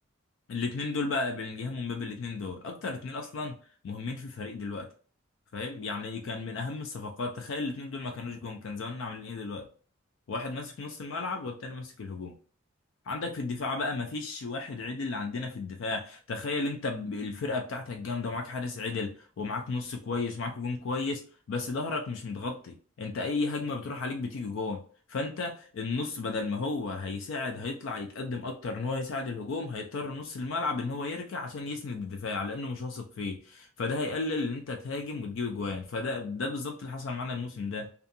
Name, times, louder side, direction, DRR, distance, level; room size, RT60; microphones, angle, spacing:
voice 1, 0.5-3.6 3.8-4.9 5.5-9.7 10.3-12.3 13.1-24.8 25.1-37.9, left 3 dB, 75° left, 0.4 m, -34 dB
2.6 x 2.3 x 2.6 m
head